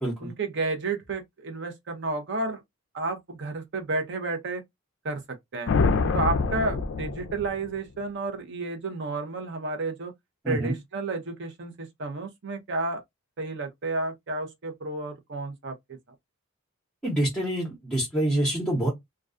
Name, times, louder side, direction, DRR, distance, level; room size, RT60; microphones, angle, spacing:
voice 1, 0.2-2.6 2.9-4.6 5.0-5.7 6.1-10.1 10.5-13.0 13.4-15.8, right 3 dB, 55° right, 0.6 m, -31 dB
sound 1, 5.7-7.8, left 4 dB, 55° left, 0.3 m, -25 dB
voice 2, 17.0-18.9, right 1 dB, ahead, 0.7 m, -26 dB
2.3 x 2.2 x 2.4 m
head